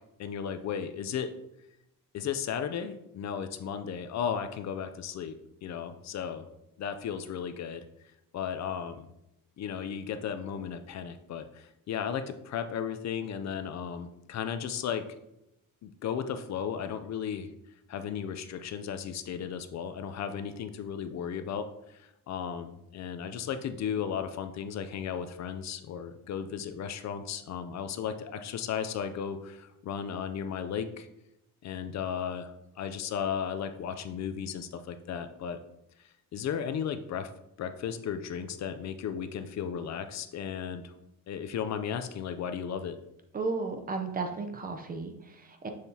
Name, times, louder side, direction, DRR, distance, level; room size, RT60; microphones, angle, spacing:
voice 1, 0.2-1.3 2.1-6.5 6.8-7.8 8.3-9.1 9.6-15.2 15.8-17.5 17.9-31.1 31.6-35.6 36.0-37.3 37.6-40.9 41.3-43.0, left 8 dB, 50° left, 9 dB, 0.5 m, -35 dB
voice 2, 43.3-45.7, right 4 dB, 25° right, 6 dB, 0.6 m, -34 dB
6.9 x 6.6 x 2.8 m, 0.84 s
cardioid pair, 170°, 34 cm